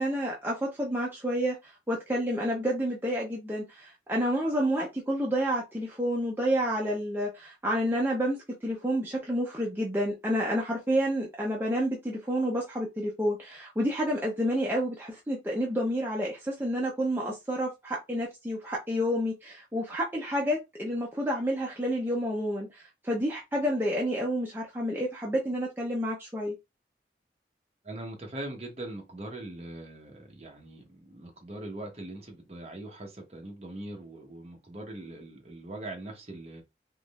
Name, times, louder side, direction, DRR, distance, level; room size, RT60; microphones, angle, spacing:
voice 1, 0.0-26.6, equal, 10° right, 0.6 m, -29 dB
voice 2, 27.8-36.6, right 1 dB, 35° right, 0.9 m, -41 dB
3.6 x 3.1 x 2.3 m
head